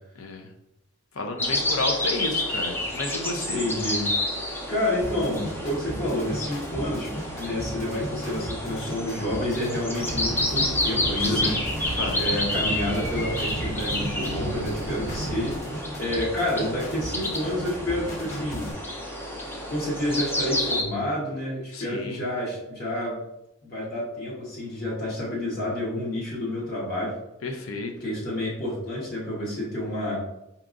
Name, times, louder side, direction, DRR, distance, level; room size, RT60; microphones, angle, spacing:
voice 1, 0.2-0.5 1.1-3.6 11.2-12.2 21.7-22.2 27.4-27.9, left 3 dB, 85° left, 4 dB, 0.6 m, -32 dB
sound 1, 1.4-20.8, left 1 dB, 10° left, 0.4 m, -30 dB
voice 2, 3.5-4.1 4.7-7.1 7.4-18.7 19.7-23.2 23.6-27.2 28.0-30.2, left 1 dB, 45° left, -5 dB, 1.0 m, -29 dB
sound 2, 5.0-18.7, equal, 70° left, 1.5 m, -37 dB
sound 3, 10.1-15.6, right 1 dB, 55° right, 0.5 m, -34 dB
4.6 x 2.8 x 2.5 m, 0.87 s
head